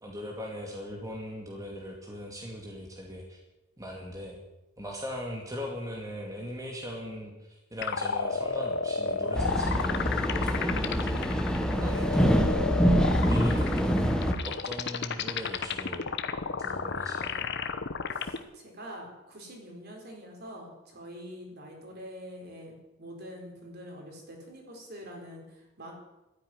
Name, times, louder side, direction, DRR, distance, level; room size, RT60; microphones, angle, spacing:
voice 1, 0.0-3.4 3.8-4.4 4.8-14.1 14.4-16.2 16.6-17.5, equal, 15° right, -1 dB, 2.3 m, -40 dB
sound 1, 7.8-18.4, left 5 dB, 55° left, 1.0 m, -32 dB
sound 2, 9.3-14.3, equal, 5° left, 1.4 m, -25 dB
voice 2, 13.4-14.0 18.1-25.9, equal, 50° right, 1 dB, 4.4 m, -45 dB
13.0 x 9.8 x 9.6 m, 0.99 s
head